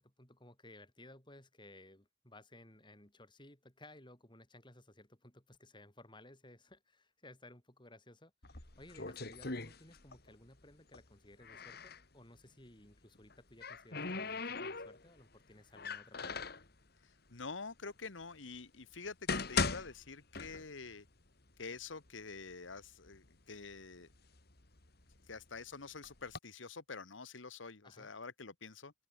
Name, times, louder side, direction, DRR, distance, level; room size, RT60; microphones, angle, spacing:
voice 1, 0.0-16.5 27.8-28.1, left 1 dB, 25° left, 7.8 m, -58 dB
sound 1, 8.4-10.3 10.6-12.0 13.1-15.2 15.7-16.7 17.5-17.6 18.2-18.3 18.9-20.9 21.3-21.4 22.1-22.2 22.5-23.2 23.7-25.4 26.0-26.4, left 4 dB, 55° left, 2.8 m, -39 dB
voice 2, 17.0-21.0 21.6-24.1 25.3-28.9, left 4 dB, 85° left, 1.6 m, -47 dB
open air
head